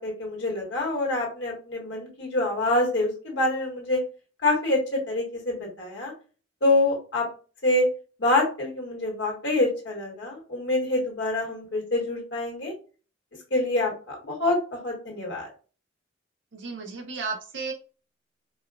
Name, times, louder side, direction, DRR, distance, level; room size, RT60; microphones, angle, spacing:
voice 1, 0.0-4.0 4.4-6.1 6.6-7.3 7.6-7.9 8.2-12.7 13.5-15.5, left 2 dB, 65° left, -2 dB, 1.4 m, -26 dB
voice 2, 16.5-17.7, right 4 dB, 65° right, 1 dB, 0.7 m, -33 dB
4.2 x 2.2 x 2.3 m, 0.36 s
head